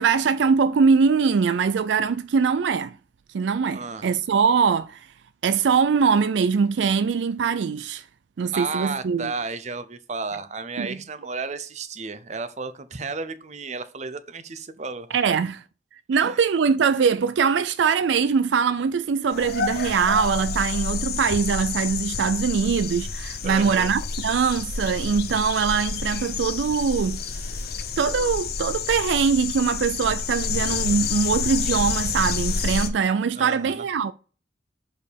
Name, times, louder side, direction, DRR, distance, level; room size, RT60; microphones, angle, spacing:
voice 1, 0.0-3.0 3.3-5.0 5.4-8.0 8.4-9.3 10.8-11.0 15.1-15.6 16.1-27.5 28.0-34.1, right 6 dB, 75° right, 0.4 m, -22 dB
voice 2, 3.7-4.1 8.5-15.2 16.1-16.4 23.4-23.9 33.3-33.9, right 4 dB, 40° right, 0.7 m, -33 dB
sound 1, 19.3-32.9, left 5 dB, 55° left, 0.8 m, -29 dB
6.3 x 5.3 x 5.1 m
head